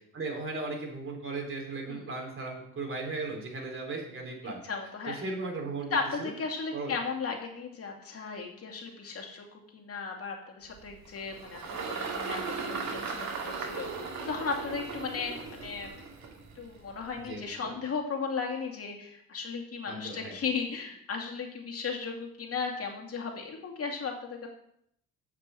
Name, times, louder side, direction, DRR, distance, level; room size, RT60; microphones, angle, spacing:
voice 1, 0.1-4.6 5.1-6.3 6.7-7.0 17.2-17.7 19.9-20.3, right 3 dB, 45° right, 1 dB, 3.5 m, -37 dB
voice 2, 4.4-5.2 5.9-9.5 9.7-13.9 14.2-16.0 16.6-24.5, left 5 dB, 50° left, 1 dB, 2.5 m, -36 dB
Engine, 10.7-17.3, right 4 dB, 65° right, 2.3 m, -38 dB
7.9 x 5.8 x 7.5 m, 0.71 s
cardioid pair, 90°, 30 cm